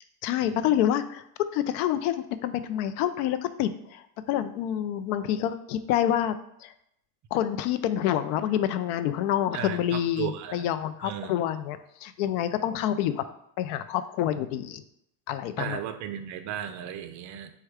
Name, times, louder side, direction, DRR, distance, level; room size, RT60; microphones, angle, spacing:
voice 1, 0.2-1.2 1.5-6.7 7.3-13.2 13.6-14.8 15.3-15.8, left 11 dB, 70° left, 12 dB, 0.5 m, -27 dB
voice 2, 9.5-10.6 11.0-11.3 15.6-17.5, right 9 dB, 40° right, 9 dB, 0.4 m, -35 dB
4.4 x 2.3 x 4.7 m, 0.76 s
supercardioid pair, 110°, 49 cm